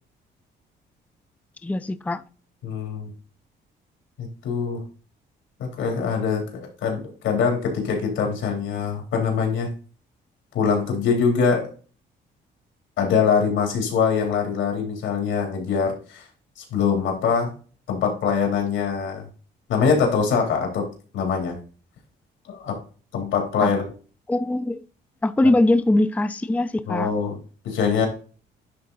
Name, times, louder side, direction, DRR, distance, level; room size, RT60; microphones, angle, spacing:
voice 1, 1.6-2.2 23.6-23.7 24.3-24.8 25.2-27.1, left 2 dB, 5° left, 0.5 m, -21 dB
voice 2, 2.6-3.1 4.2-4.8 5.6-9.7 10.5-11.7 13.0-16.2 16.6-17.5 17.9-19.2 19.7-20.9 21.1-21.6 22.5-22.8 23.1-23.8 26.9-27.4 27.6-28.1, left 6 dB, 85° left, 3.3 m, -23 dB
10.5 x 3.7 x 4.0 m
cardioid pair, 90°, 20 cm